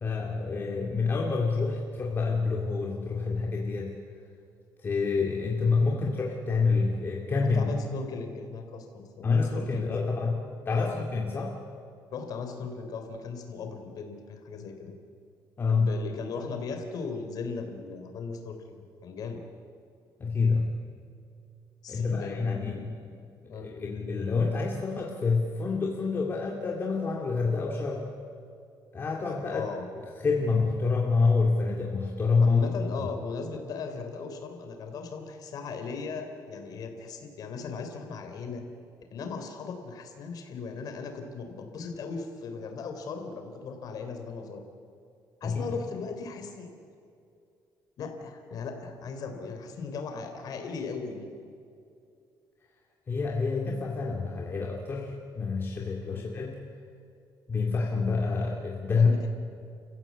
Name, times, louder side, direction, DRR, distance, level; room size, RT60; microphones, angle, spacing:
voice 1, 0.0-4.0 4.8-7.7 9.2-10.4 10.7-11.5 15.6-15.9 20.2-20.8 21.9-23.2 23.4-28.0 28.9-29.7 30.2-32.6 33.0-33.1 45.4-45.7 53.1-56.6 57.5-59.1, left 4 dB, 30° left, -1 dB, 2.2 m, -27 dB
voice 2, 7.5-10.2 10.7-11.1 12.1-15.0 15.7-19.4 21.8-22.9 23.5-23.7 29.5-29.9 32.4-38.6 39.1-44.6 45.4-46.7 48.0-51.3 56.1-56.2 58.9-59.3, left 5 dB, 55° left, 5 dB, 3.4 m, -38 dB
29.5 x 15.5 x 8.4 m, 2.5 s
cardioid pair, 155°, 8 cm